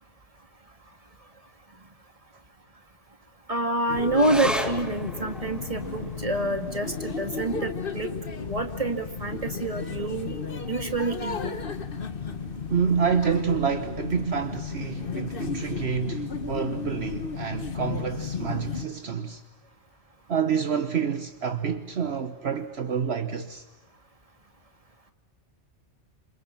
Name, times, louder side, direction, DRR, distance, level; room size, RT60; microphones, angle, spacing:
voice 1, 3.5-8.1 8.4-10.4 10.7-11.6, right 2 dB, 30° right, 2.4 m, -27 dB
sound 1, 3.9-18.9, left 5 dB, 50° left, 1.5 m, -34 dB
sound 2, 4.1-10.9 11.2-11.3 11.7-12.3 12.9-13.0, equal, ahead, 2.1 m, -38 dB
voice 2, 12.7-19.4 20.3-23.6, right 7 dB, 60° right, 1.4 m, -28 dB
29.0 x 27.0 x 7.3 m
omnidirectional pair, 1.2 m